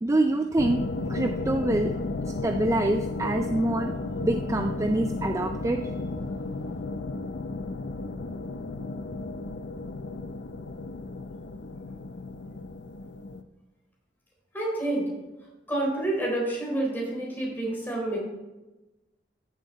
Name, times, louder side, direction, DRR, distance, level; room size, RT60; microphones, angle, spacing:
voice 1, 0.0-0.8 1.1-1.9 2.4-3.9 4.2-5.8, right 2 dB, 15° right, 6 dB, 0.4 m, -25 dB
sound 1, 0.6-13.4, left 3 dB, 65° left, 0.6 m, -33 dB
voice 2, 14.5-15.1 15.7-18.2, right 1 dB, 10° left, -3 dB, 3.9 m, -28 dB
14.0 x 7.3 x 4.2 m, 1.1 s
head